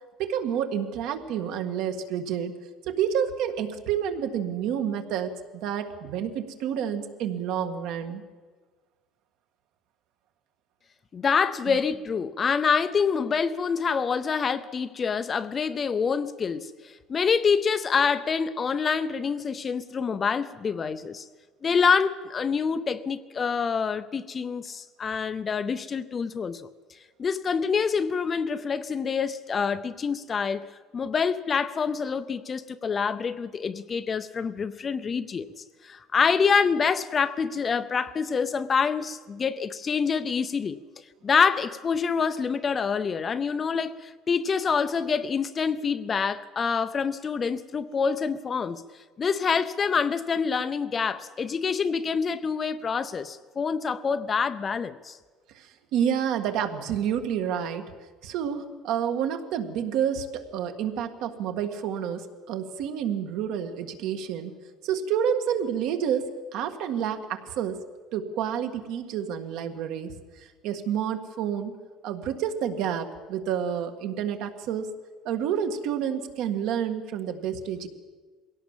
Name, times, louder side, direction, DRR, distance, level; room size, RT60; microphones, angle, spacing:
voice 1, 0.2-2.5 2.9-8.2 11.7-11.8 55.5-57.9 58.2-64.5 64.8-67.8 68.1-70.2 70.6-71.7 72.0-74.9 75.3-77.9, right 8 dB, 60° right, 1.7 m, -29 dB
voice 2, 11.1-16.7 17.1-21.3 21.6-26.6 27.2-30.6 30.9-35.5 35.8-40.8 41.2-48.8 49.2-55.2, left 6 dB, 20° left, 0.5 m, -26 dB
22.0 x 17.5 x 7.3 m
cardioid pair, 175°, 0 cm